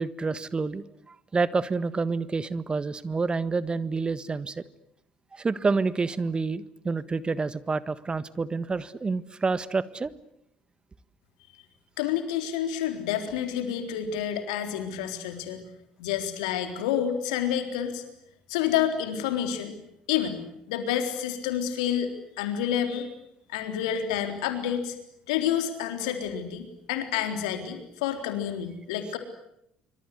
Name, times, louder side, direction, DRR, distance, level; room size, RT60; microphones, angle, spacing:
voice 1, 0.0-4.6 5.3-10.1, right 4 dB, 25° right, 15 dB, 1.5 m, -28 dB
voice 2, 12.0-15.6 16.0-18.0 18.5-19.7 20.1-22.1 22.4-23.1 23.5-25.0 25.3-29.2, left 9 dB, 75° left, 7 dB, 3.9 m, -29 dB
27.0 x 25.0 x 8.0 m, 0.77 s
hypercardioid pair, 60°, 4 cm